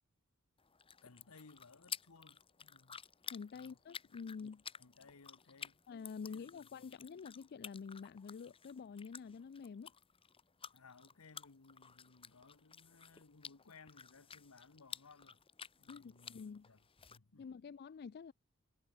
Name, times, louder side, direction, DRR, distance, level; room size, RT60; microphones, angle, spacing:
sound 1, 0.6-17.2, left 7 dB, 25° left, 1.1 m, -53 dB
voice 1, 1.0-3.0 3.5-4.4 4.8-5.8 6.2-7.0 10.7-15.4 15.8-17.5, left 4 dB, 90° left, 1.2 m, -62 dB
voice 2, 3.3-4.6 5.9-9.9 15.9-16.7 17.4-18.3, left 5 dB, 50° left, 0.4 m, -48 dB
head